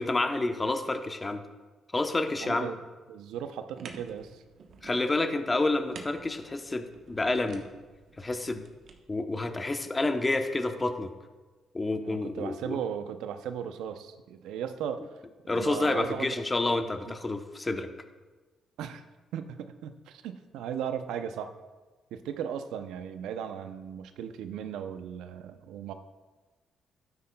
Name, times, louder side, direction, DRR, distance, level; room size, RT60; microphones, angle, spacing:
voice 1, 0.0-1.4 1.9-2.7 4.8-7.6 8.2-8.6 9.1-11.1 11.7-12.8 15.5-17.9, left 2 dB, 20° left, 7 dB, 0.8 m, -29 dB
voice 2, 2.4-2.8 3.1-4.4 12.0-15.1 15.4-16.3 17.1-17.2 18.8-19.0 19.3-21.5 22.1-25.9, right 8 dB, 90° right, 9 dB, 0.6 m, -37 dB
sound 1, 3.7-9.0, right 5 dB, 65° right, 1.0 m, -50 dB
12.0 x 9.6 x 2.3 m, 1.3 s
cardioid pair, 90°, 0 cm